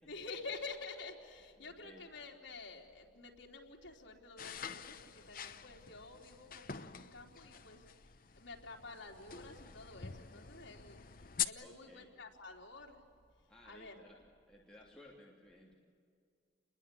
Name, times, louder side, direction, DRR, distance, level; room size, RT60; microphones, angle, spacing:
voice 1, 0.1-13.0 13.6-14.0, left 3 dB, 80° left, -1 dB, 3.7 m, -50 dB
voice 2, 1.6-2.0 11.6-12.1 13.5-14.2 14.4-15.7, left 1 dB, 5° left, -4 dB, 2.8 m, -58 dB
sound 1, 4.4-11.5, left 9 dB, 50° left, 0.9 m, -45 dB
29.0 x 21.5 x 8.6 m, 2.2 s
head